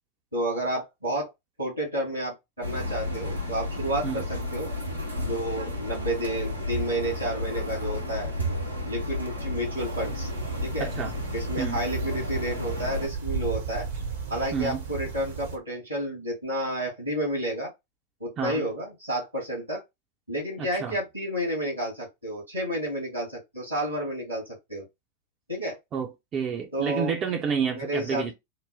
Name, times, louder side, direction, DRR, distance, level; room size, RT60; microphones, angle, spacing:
voice 1, 0.3-1.3 1.6-4.7 5.2-8.3 8.8-10.3 10.6-10.9 11.3-13.9 14.3-17.7 18.2-19.8 20.3-24.8 25.5-25.8 26.7-27.1 27.7-28.3, right 1 dB, 85° right, 1.8 m, -30 dB
sound 1, 2.6-13.1, left 1 dB, 90° left, 1.0 m, -32 dB
sound 2, 9.8-15.6, right 6 dB, 65° right, 1.0 m, -35 dB
voice 2, 10.8-11.1 11.6-11.8 14.5-14.8 18.4-18.6 20.6-21.0 25.9-28.3, right 6 dB, 30° right, 0.7 m, -29 dB
3.8 x 2.1 x 3.5 m
figure-of-eight pair, 90°, 0 cm